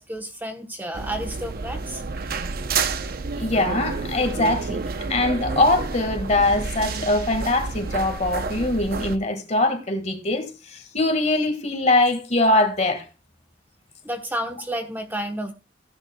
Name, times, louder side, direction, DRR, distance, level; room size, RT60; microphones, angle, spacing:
voice 1, 0.0-2.0 14.0-15.5, right 1 dB, 10° right, 1.0 m, -31 dB
sound 1, 0.9-9.2, right 4 dB, 55° right, 0.7 m, -30 dB
voice 2, 3.4-4.8 5.1-13.0, left 2 dB, 40° left, 1.8 m, -22 dB
15.5 x 10.5 x 2.3 m
head